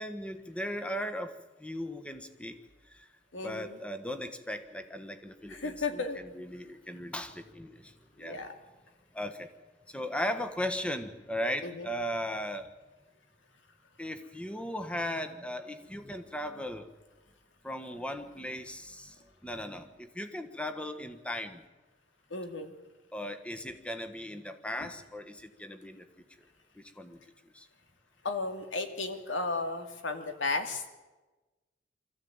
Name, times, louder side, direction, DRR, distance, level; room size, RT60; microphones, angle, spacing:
voice 1, 0.0-1.3 1.6-2.6 3.4-7.9 8.2-8.4 9.1-9.5 9.9-12.7 14.0-16.9 17.6-19.1 19.4-21.6 23.1-26.0 27.0-27.2 27.5-27.6, equal, 5° left, 7 dB, 1.4 m, -37 dB
voice 2, 3.3-3.8 5.5-6.2 8.2-8.5 11.6-11.9 22.3-22.7 24.8-24.9 28.2-30.9, left 3 dB, 85° left, 6 dB, 2.4 m, -34 dB
24.5 x 14.5 x 8.9 m, 1.2 s
head